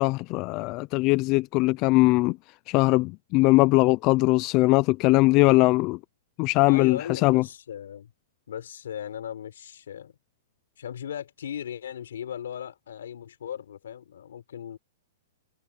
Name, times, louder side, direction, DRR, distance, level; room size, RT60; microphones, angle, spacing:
voice 1, 0.0-2.4 2.7-6.0 6.4-7.4, left 22 dB, 25° left, 0.3 m, -21 dB
voice 2, 6.7-8.1 8.5-10.1 10.8-14.8, left 9 dB, 70° left, 3.8 m, -37 dB
hypercardioid pair, 175°, 0 cm